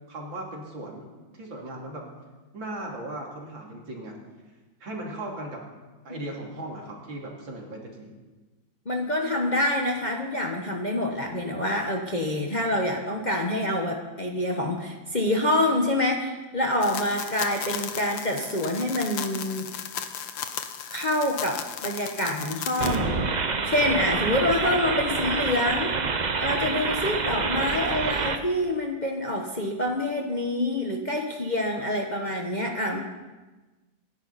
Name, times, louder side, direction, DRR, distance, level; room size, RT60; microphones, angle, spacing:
voice 1, 0.1-1.1 1.3-2.0 2.5-4.2 4.8-5.6 6.1-8.1, right 1 dB, 80° right, -1 dB, 3.5 m, -37 dB
voice 2, 8.9-19.7 20.9-23.3 23.6-26.0 26.4-33.0, left 1 dB, 30° left, 1 dB, 1.1 m, -26 dB
sound 1, 16.8-23.0, left 8 dB, 80° left, 1.7 m, -35 dB
sound 2, 22.8-28.4, right 4 dB, 60° right, 0.4 m, -27 dB
27.0 x 10.5 x 4.2 m, 1.2 s
omnidirectional pair, 2.1 m